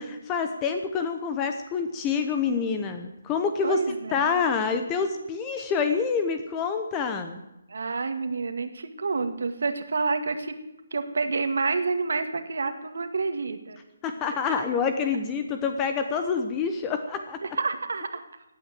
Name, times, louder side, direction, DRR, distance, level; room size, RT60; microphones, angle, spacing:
voice 1, 0.0-3.8 4.1-7.4 14.0-17.4, left 5 dB, 15° left, 7 dB, 0.9 m, -27 dB
voice 2, 3.6-4.4 7.7-10.6 10.9-13.8 17.4-18.2, right 4 dB, 75° right, 8 dB, 2.0 m, -28 dB
17.0 x 9.2 x 7.7 m, 0.92 s
hypercardioid pair, 165°, 0 cm